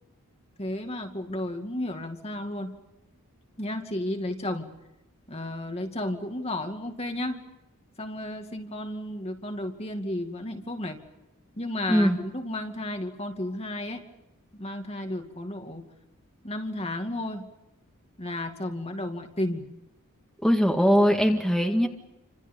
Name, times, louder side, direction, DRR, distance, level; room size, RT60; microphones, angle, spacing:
voice 1, 0.6-2.8 3.6-4.7 5.3-7.4 8.0-11.0 11.6-14.1 14.5-15.9 16.4-17.5 18.2-19.7, left 1 dB, 25° left, 4 dB, 2.4 m, -33 dB
voice 2, 20.4-21.9, equal, ahead, 1 dB, 2.0 m, -21 dB
30.0 x 26.5 x 5.5 m, 0.92 s
head